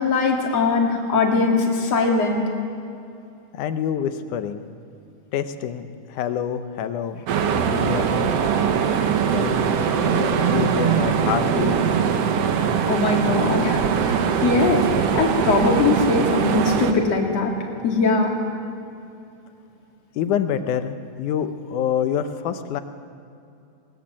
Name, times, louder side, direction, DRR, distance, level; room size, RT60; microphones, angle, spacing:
voice 1, 0.0-2.4 12.9-14.9 15.1-17.5 17.8-18.3, left 4 dB, 55° left, 0 dB, 3.5 m, -21 dB
voice 2, 3.5-4.6 5.3-7.2 7.5-8.4 9.3-9.7 10.0-11.8 20.2-20.9 21.2-22.8, left 9 dB, 85° left, 9 dB, 2.4 m, -26 dB
sound 1, 7.3-16.9, right 7 dB, 60° right, 2.0 m, -21 dB
20.0 x 19.5 x 7.5 m, 2.6 s
omnidirectional pair, 3.5 m